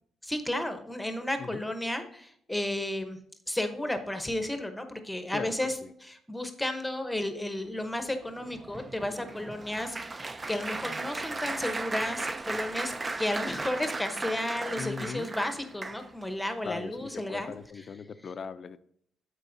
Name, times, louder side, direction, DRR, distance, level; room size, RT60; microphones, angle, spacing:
voice 1, 0.2-3.2 3.5-5.7 6.0-17.5, left 1 dB, 5° left, 7 dB, 0.8 m, -33 dB
Applause, 8.0-16.3 17.0-17.2 17.5-17.7, right 3 dB, 25° right, 0.4 m, -36 dB
voice 2, 14.8-15.3 16.6-18.8, left 5 dB, 45° left, 12 dB, 0.4 m, -39 dB
12.0 x 4.6 x 2.6 m, 0.67 s
cardioid pair, 110°, 0 cm